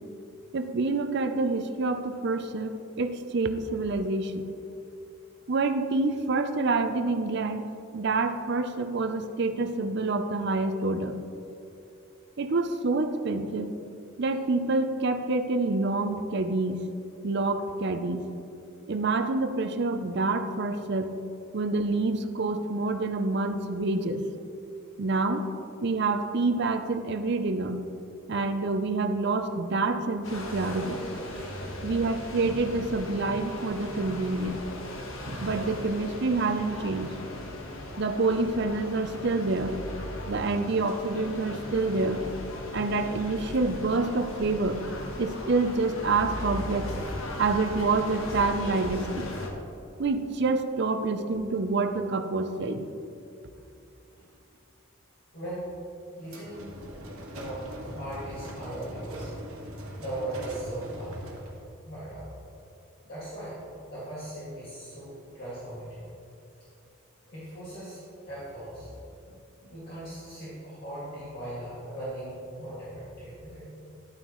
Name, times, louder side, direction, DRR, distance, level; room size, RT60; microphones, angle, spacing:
voice 1, 0.5-4.4 5.5-11.2 12.4-13.7 14.2-16.9 17.2-18.3 18.9-21.1 21.5-24.2 25.0-25.4 25.8-27.8 28.3-31.0 31.8-34.6 35.3-37.1 38.0-39.8 40.3-42.2 42.7-44.8 45.2-46.9 47.4-49.3 50.0-52.9, right 3 dB, 55° right, 8 dB, 0.5 m, -27 dB
sound 1, 30.2-49.5, left 1 dB, 70° left, 1.2 m, -37 dB
voice 2, 31.2-31.7 54.1-54.3 55.3-55.7 56.2-59.3 60.0-61.2 61.8-62.3 63.0-63.6 63.9-66.1 67.3-73.7, right 1 dB, 45° left, -10 dB, 2.2 m, -39 dB
sound 2, 56.2-61.7, right 1 dB, 85° right, 1.3 m, -41 dB
11.5 x 9.2 x 3.1 m, 2.7 s
head